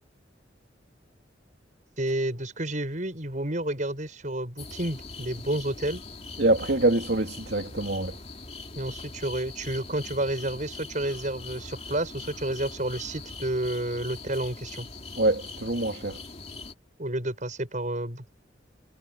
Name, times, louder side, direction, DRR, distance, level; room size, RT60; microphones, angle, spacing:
voice 1, 2.0-6.0 8.8-14.9 17.0-18.3, right 1 dB, 40° right, 6.1 m, -30 dB
sound 1, 4.6-16.7, left 3 dB, 35° left, 2.8 m, -42 dB
voice 2, 6.4-8.1 15.2-16.2, right 2 dB, 60° right, 2.9 m, -25 dB
head